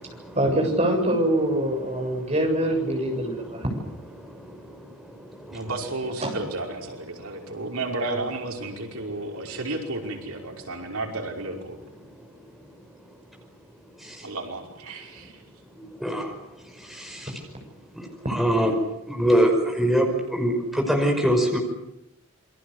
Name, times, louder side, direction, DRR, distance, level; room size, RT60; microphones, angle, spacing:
voice 1, 0.4-3.7, right 1 dB, 30° right, 2 dB, 7.7 m, -24 dB
voice 2, 5.5-11.8 14.2-15.4, right 2 dB, 85° right, 1 dB, 5.5 m, -32 dB
voice 3, 18.3-18.7 19.2-20.1 20.3-20.6 20.9-21.6, equal, ahead, 1 dB, 5.3 m, -21 dB
28.0 x 23.5 x 8.2 m, 0.85 s
head